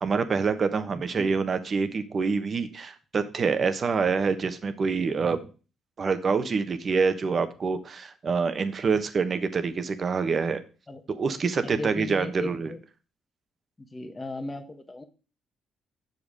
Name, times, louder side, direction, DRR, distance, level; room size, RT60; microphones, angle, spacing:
voice 1, 0.0-5.5 6.0-10.6 11.1-12.7, right 5 dB, 45° right, 10 dB, 1.1 m, -26 dB
voice 2, 1.0-1.4 10.9-11.0 11.6-12.8 13.9-15.0, left 2 dB, 20° left, 5 dB, 1.3 m, -36 dB
6.9 x 5.3 x 6.4 m, 0.34 s
cardioid pair, 90°, 0 cm